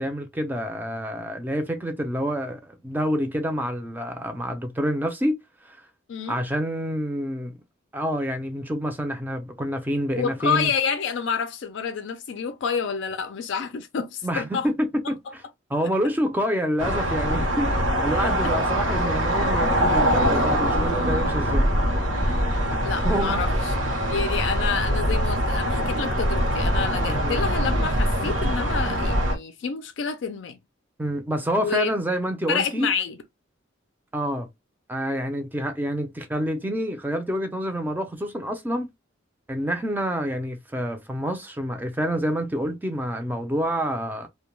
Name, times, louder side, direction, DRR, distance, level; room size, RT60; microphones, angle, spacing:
voice 1, 0.0-5.3 5.6-5.8 6.3-7.5 7.9-10.7 14.2-15.2 15.7-21.7 22.7-22.8 23.0-23.4 27.1-27.4 31.0-32.9 34.1-34.5 34.9-38.9 39.5-44.3, equal, 10° right, 0.4 m, -27 dB
voice 2, 10.1-14.7 15.0-15.1 18.1-18.3 22.8-23.7 24.1-30.6 31.5-31.9 32.5-33.2, left 6 dB, 65° left, 0.4 m, -28 dB
sound 1, 16.8-29.4, equal, 75° right, 0.8 m, -23 dB
2.2 x 2.2 x 3.0 m
head